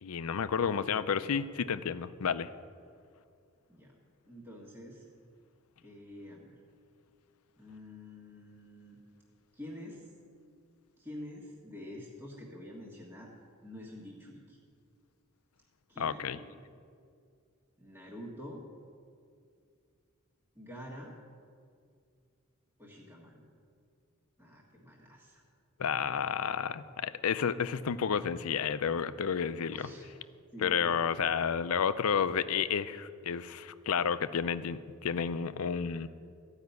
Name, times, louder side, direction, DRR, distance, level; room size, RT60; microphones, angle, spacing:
voice 1, 0.0-2.5 16.0-16.4 25.8-29.9 30.6-36.1, left 7 dB, 75° left, 14 dB, 0.5 m, -31 dB
voice 2, 4.3-5.1 5.8-6.6 7.6-9.0 9.5-10.0 11.0-13.3 13.6-14.6 15.9-16.4 17.8-18.6 20.5-21.1 22.8-23.4 24.4-25.4 29.7-30.1 30.5-31.3 35.9-36.0, left 1 dB, 10° right, -6 dB, 1.5 m, -47 dB
14.0 x 5.7 x 9.5 m, 2.3 s
head